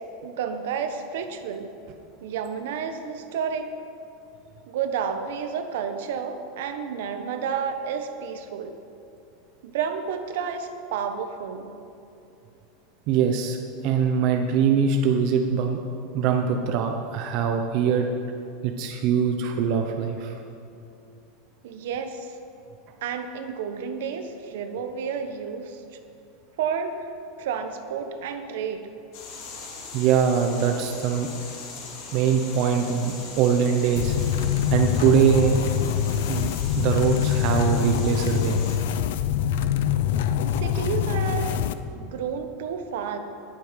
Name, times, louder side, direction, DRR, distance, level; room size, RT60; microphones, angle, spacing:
voice 1, 0.2-1.7 2.2-3.7 4.7-8.8 9.6-11.7 21.6-22.3 23.0-25.8 26.6-26.9 27.4-28.8 40.6-41.6 41.9-43.2, right 7 dB, 70° right, 7 dB, 1.2 m, -31 dB
voice 2, 13.1-13.6 13.8-15.8 16.1-18.1 18.6-20.4 29.9-31.3 32.1-34.1 34.7-35.6 36.3-36.5 36.8-38.7, right 7 dB, 40° right, 4 dB, 0.8 m, -22 dB
sound 1, 29.1-38.8, left 4 dB, 50° left, 3.0 m, -40 dB
sound 2, 33.9-41.7, left 9 dB, 65° left, 0.6 m, -24 dB
19.0 x 8.2 x 5.3 m, 2.6 s
supercardioid pair, 175°, 0 cm